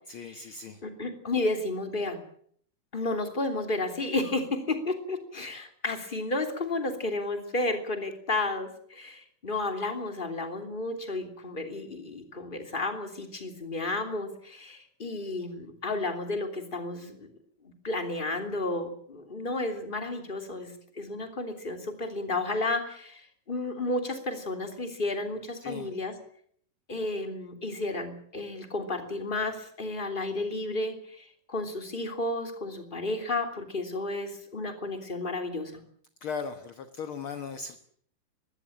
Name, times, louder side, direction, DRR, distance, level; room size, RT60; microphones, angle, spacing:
voice 1, 0.1-0.8 25.6-25.9 36.2-37.8, left 5 dB, 55° left, 9 dB, 1.7 m, -37 dB
voice 2, 0.8-2.2 2.9-17.3 17.8-26.1 26.9-35.8, left 2 dB, 15° left, 5 dB, 2.8 m, -32 dB
21.5 x 16.0 x 8.9 m, 0.62 s
omnidirectional pair, 3.8 m